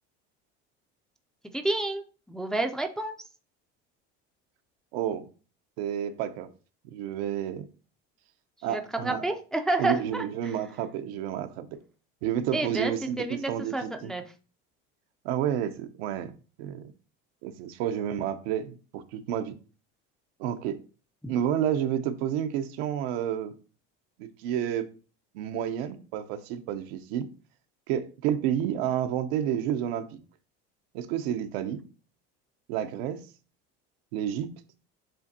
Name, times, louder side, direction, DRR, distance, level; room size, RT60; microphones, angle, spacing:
voice 1, 1.5-3.2 8.7-10.5 12.5-14.2 21.2-21.3, right 2 dB, ahead, 0.3 m, -30 dB
voice 2, 4.9-5.3 5.8-6.5 6.8-7.7 8.6-9.2 9.8-11.7 12.2-14.1 15.2-16.3 16.6-16.9 17.4-19.6 20.4-20.8 21.3-23.5 24.2-24.9 25.3-27.3 27.9-30.2 30.9-31.8 32.7-33.2 34.1-34.5, right 10 dB, 85° right, 0.7 m, -30 dB
7.6 x 2.5 x 2.7 m
cardioid pair, 130°, 29 cm